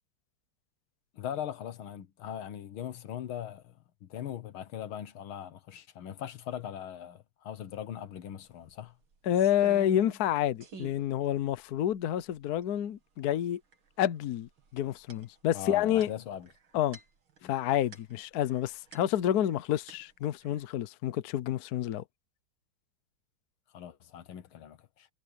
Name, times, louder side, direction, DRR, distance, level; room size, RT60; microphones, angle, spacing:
voice 1, 1.1-9.0 15.5-16.5 17.4-17.5 23.7-25.1, left 10 dB, 85° left, 2.0 m, -40 dB
sound 1, 8.4-8.5 8.8-10.3 10.6-11.0 11.6-11.7 11.9-12.6 13.7-14.1 14.4-19.6 19.9-20.6, right 5 dB, 80° right, 3.1 m, -49 dB
voice 2, 9.3-13.6 14.0-16.1 16.7-17.0 17.4-22.0, left 11 dB, 60° left, 1.1 m, -29 dB
omnidirectional pair, 2.2 m